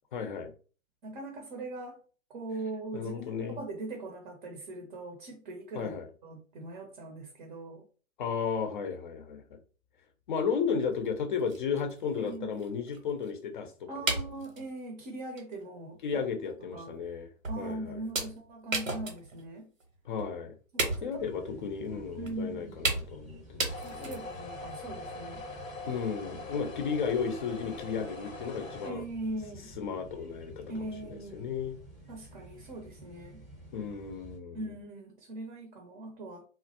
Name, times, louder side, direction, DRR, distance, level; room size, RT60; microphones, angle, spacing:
voice 1, 0.1-0.5 2.9-3.6 5.7-6.1 8.2-9.4 10.3-13.9 16.0-17.3 17.6-18.3 20.1-20.5 21.0-23.7 23.9-24.2 25.9-29.0 29.8-31.8 33.7-34.7, left 6 dB, 40° left, 0.5 m, -34 dB
voice 2, 1.0-2.0 2.3-5.9 6.2-7.8 12.2-12.6 13.9-16.3 16.7-16.9 17.5-19.7 20.7-21.1 21.5-21.6 22.2-22.8 23.8-25.4 28.9-29.7 30.7-31.5 32.1-33.4 34.5-36.4, right 2 dB, 35° right, 0.6 m, -40 dB
sound 1, 11.0-11.1 11.4-13.3 14.1-14.7 15.4-15.5 15.9-16.1 16.7-16.8 17.4-17.7 18.1-19.5 19.8-19.9 20.2-20.3 20.8-21.3 22.3-22.4 22.8-23.3 23.6-24.4, right 2 dB, 90° right, 0.9 m, -34 dB
sound 2, 21.2-34.4, equal, ahead, 0.7 m, -51 dB
sound 3, 23.7-28.9, left 2 dB, 90° left, 0.7 m, -43 dB
2.3 x 2.0 x 2.7 m
figure-of-eight pair, 120°, 39 cm